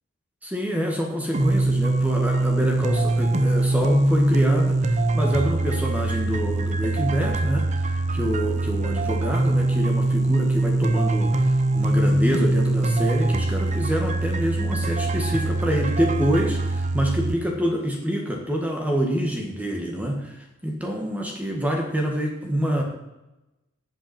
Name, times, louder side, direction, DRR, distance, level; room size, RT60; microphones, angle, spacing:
voice 1, 0.4-22.8, equal, 10° right, 0 dB, 1.6 m, -26 dB
sound 1, 1.3-17.3, right 2 dB, 35° right, 0.7 m, -23 dB
14.5 x 8.1 x 4.3 m, 0.97 s
head